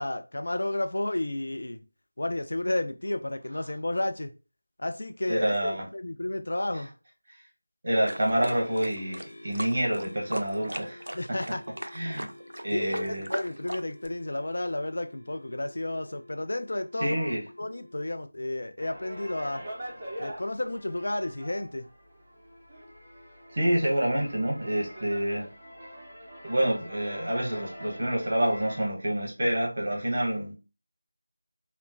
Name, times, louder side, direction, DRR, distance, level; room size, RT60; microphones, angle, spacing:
voice 1, 0.0-1.8 2.2-4.3 4.8-6.9 11.1-11.6 12.1-12.3 12.7-17.3 17.6-19.7 20.2-21.9, left 1 dB, 55° left, 0.3 m, -32 dB
voice 2, 5.3-5.8 7.8-11.0 11.9-12.3 12.6-13.3 17.0-17.4 23.5-25.5 26.5-30.5, right 1 dB, 35° right, 0.9 m, -27 dB
sound 1, 7.9-18.2, left 1 dB, 15° left, 1.0 m, -50 dB
sound 2, 8.1-14.1, right 1 dB, 70° right, 0.3 m, -37 dB
sound 3, 18.8-28.9, equal, 15° right, 0.7 m, -43 dB
2.9 x 2.1 x 2.5 m
figure-of-eight pair, 170°, 0 cm